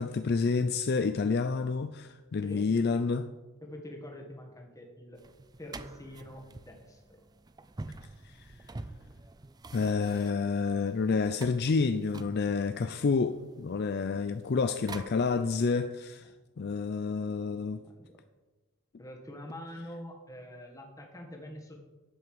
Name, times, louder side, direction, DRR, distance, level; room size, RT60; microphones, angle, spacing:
voice 1, 0.0-3.3 8.2-8.5 9.7-16.3 16.6-17.8, left 4 dB, 45° left, 0.4 m, -29 dB
voice 2, 3.6-5.2 5.6-7.0 17.8-18.2 19.0-21.8, left 1 dB, 15° left, 1.7 m, -45 dB
sound 1, 5.2-15.6, right 3 dB, 20° right, 0.4 m, -48 dB
11.0 x 5.8 x 7.8 m
head